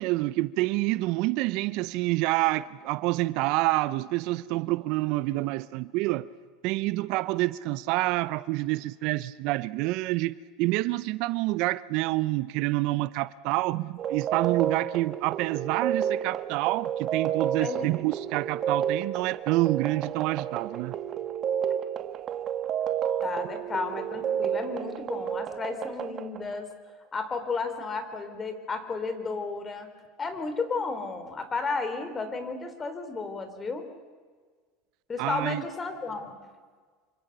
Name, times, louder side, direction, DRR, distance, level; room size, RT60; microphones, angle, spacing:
voice 1, 0.0-6.3 6.6-20.9 35.2-35.6, right 19 dB, 65° right, 0.7 m, -27 dB
sound 1, 14.0-26.6, right 9 dB, 40° right, 1.4 m, -31 dB
voice 2, 23.2-26.7 27.1-29.9 30.2-33.8 35.1-36.4, left 4 dB, 25° left, 4.0 m, -33 dB
27.0 x 25.5 x 6.8 m
hypercardioid pair, 90°, 0 cm